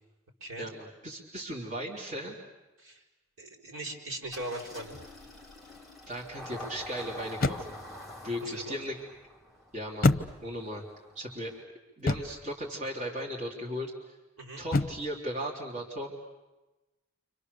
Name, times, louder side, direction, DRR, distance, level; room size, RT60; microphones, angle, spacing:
voice 1, 0.6-2.4 6.1-7.8 8.2-8.9 9.7-10.2 10.4-10.8 11.1-11.5 12.0-13.9 14.6-16.1, equal, 35° right, -3 dB, 3.3 m, -36 dB
voice 2, 3.4-5.0 8.4-8.8 14.4-14.6, right 1 dB, 70° right, 0 dB, 4.9 m, -39 dB
Engine starting, 4.3-11.6, left 1 dB, ahead, 3.0 m, -47 dB
sound 1, 4.9-5.3 7.4-7.9 10.0-10.7 12.1-12.5 14.7-15.2, left 2 dB, 40° left, 0.8 m, -28 dB
29.5 x 26.5 x 6.8 m, 1.1 s
head